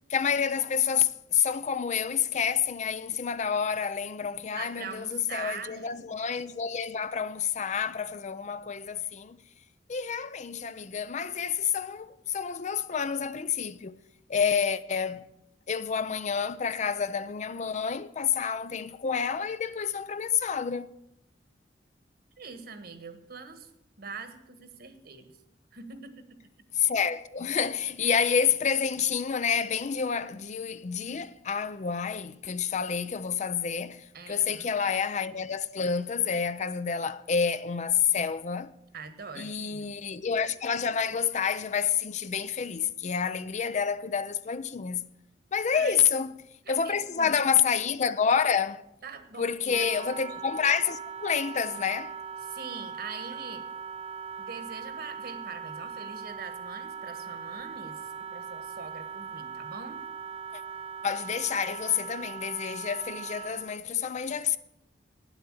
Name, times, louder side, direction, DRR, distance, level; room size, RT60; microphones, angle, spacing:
voice 1, 0.1-9.4 9.9-14.0 14.3-15.3 15.7-20.9 26.7-38.7 39.4-45.0 45.5-46.3 46.7-48.8 49.4-52.1 60.5-60.6 61.0-64.6, left 7 dB, 40° left, 0.5 m, -28 dB
voice 2, 4.5-6.0 22.4-23.7 24.0-25.3 25.7-26.2 34.1-34.7 38.9-39.9 45.7-46.2 46.6-47.3 49.0-49.9 52.4-53.6 54.4-60.0, right 5 dB, 60° right, 1.4 m, -43 dB
Wind instrument woodwind instrument, 49.7-63.8, right 6 dB, 35° right, 0.3 m, -40 dB
9.5 x 7.9 x 8.8 m
head